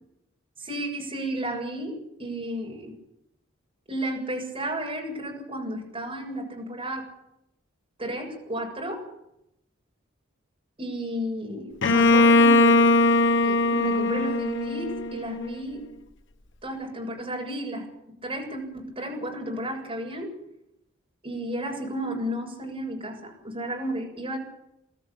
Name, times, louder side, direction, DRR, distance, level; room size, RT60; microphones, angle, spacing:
voice 1, 0.6-2.9 3.9-7.1 8.0-9.0 10.8-12.9 13.4-15.9 16.6-17.9 18.2-20.3 21.2-24.4, right 1 dB, 30° right, 0 dB, 7.3 m, -33 dB
Bowed string instrument, 11.8-15.6, left 2 dB, 65° left, 1.1 m, -20 dB
23.5 x 13.5 x 8.8 m, 0.83 s
head